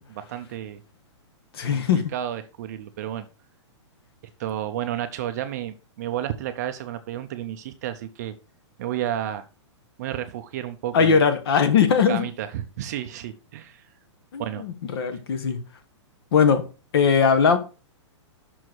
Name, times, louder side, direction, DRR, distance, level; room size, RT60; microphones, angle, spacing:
voice 1, 0.1-0.8 1.7-3.2 4.4-8.3 8.8-9.4 10.0-11.2 12.1-13.8 14.4-14.6, right 11 dB, 35° right, 0.5 m, -31 dB
voice 2, 1.5-2.0 10.9-12.3 14.3-15.6 16.3-16.6 16.9-17.6, left 6 dB, 55° left, 1.4 m, -20 dB
6.2 x 4.7 x 6.1 m
hypercardioid pair, 170°, 16 cm